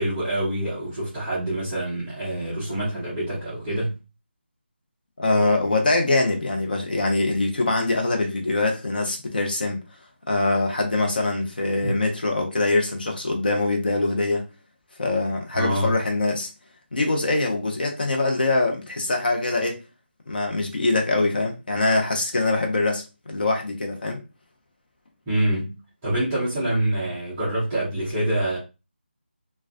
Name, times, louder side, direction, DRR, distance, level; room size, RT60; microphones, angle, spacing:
voice 1, 0.0-3.9 15.5-16.0 25.3-28.6, right 1 dB, 5° right, 0.4 m, -26 dB
voice 2, 5.2-9.8 10.3-14.4 15.0-16.5 16.9-19.8 20.3-24.2, left 2 dB, 50° left, 0.6 m, -23 dB
2.3 x 2.2 x 2.4 m
figure-of-eight pair, 175°, 6 cm